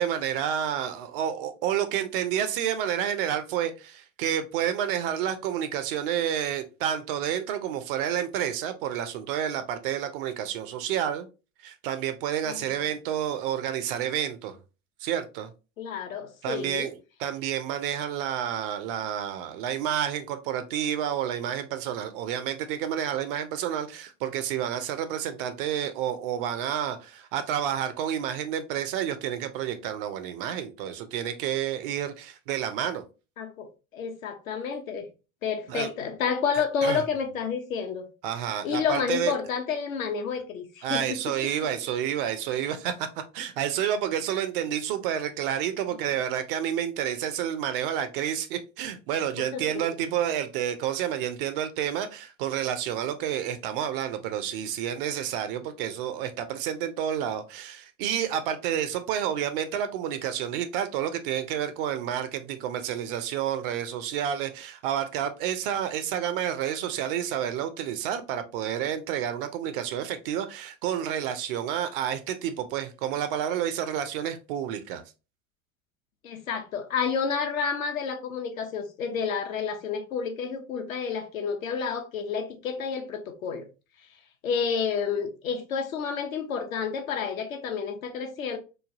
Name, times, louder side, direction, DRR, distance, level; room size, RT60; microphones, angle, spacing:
voice 1, 0.0-11.3 11.6-14.5 15.0-15.5 16.4-33.0 35.7-35.9 36.8-37.0 38.2-39.3 40.8-43.1 43.3-75.0, right 10 dB, 45° right, 0.4 m, -30 dB
voice 2, 15.8-16.9 33.4-33.7 33.9-35.1 35.4-38.0 38.6-41.5 49.4-49.6 76.2-83.7 84.4-88.6, left 6 dB, 70° left, 0.7 m, -30 dB
3.1 x 2.2 x 2.5 m
figure-of-eight pair, 75°, 42 cm